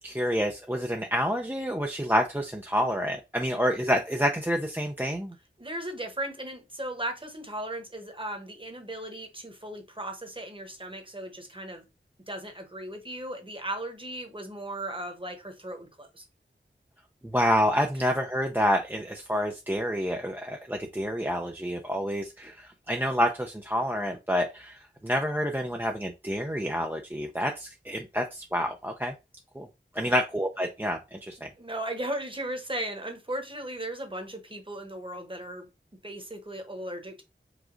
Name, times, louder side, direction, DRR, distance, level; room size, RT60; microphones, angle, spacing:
voice 1, 0.0-5.3 17.2-29.1 29.5-29.7 29.9-31.5, equal, 10° right, 0.6 m, -28 dB
voice 2, 5.6-11.8 12.3-16.3 17.9-18.0 30.0-30.2 31.6-35.7 36.0-37.2, right 1 dB, 25° right, 1.2 m, -36 dB
4.9 x 2.4 x 3.8 m
wide cardioid pair, 55°, 20 cm